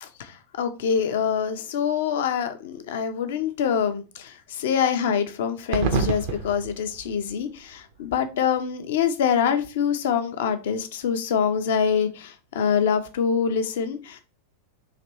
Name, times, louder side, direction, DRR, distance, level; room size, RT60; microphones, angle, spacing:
voice 1, 0.0-14.2, left 7 dB, 55° left, 8 dB, 0.6 m, -25 dB
sound 1, 5.7-8.5, right 4 dB, 50° right, 0.6 m, -29 dB
4.2 x 2.9 x 4.3 m, 0.32 s
figure-of-eight pair, 90°, 0 cm